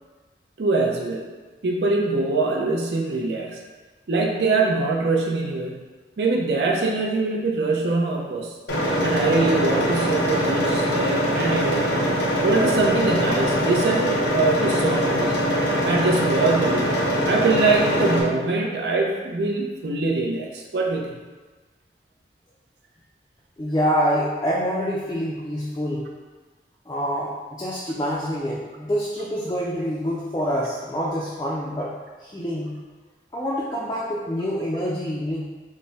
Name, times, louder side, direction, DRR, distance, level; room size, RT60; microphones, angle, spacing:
voice 1, 0.6-1.3 1.6-3.6 4.1-5.8 6.2-8.5 9.0-15.4 15.8-16.9 17.2-21.1, right 3 dB, 75° right, 0 dB, 0.5 m, -23 dB
sound 1, 8.7-18.2, equal, 80° left, 0.7 m, -22 dB
voice 2, 23.6-26.1 26.9-31.9 32.2-32.8 33.3-35.5, equal, 20° left, -6 dB, 0.3 m, -26 dB
3.4 x 2.0 x 4.0 m, 1.3 s
head